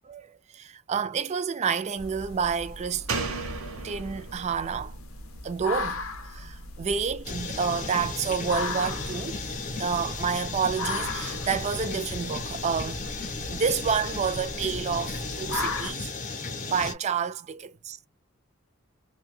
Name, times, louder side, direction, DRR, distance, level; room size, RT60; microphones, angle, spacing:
voice 1, 0.0-3.1 3.8-5.0 5.4-9.5 9.8-13.1 13.5-16.1 16.6-18.0, right 6 dB, 35° right, 0.4 m, -29 dB
sound 1, 2.0-15.9, left 3 dB, 85° left, 0.6 m, -38 dB
Slam, 3.1-6.6 6.9-7.0, right 3 dB, 80° right, 0.7 m, -36 dB
sound 2, 7.2-16.9, left 3 dB, 40° left, 0.7 m, -35 dB
2.6 x 2.2 x 3.1 m
head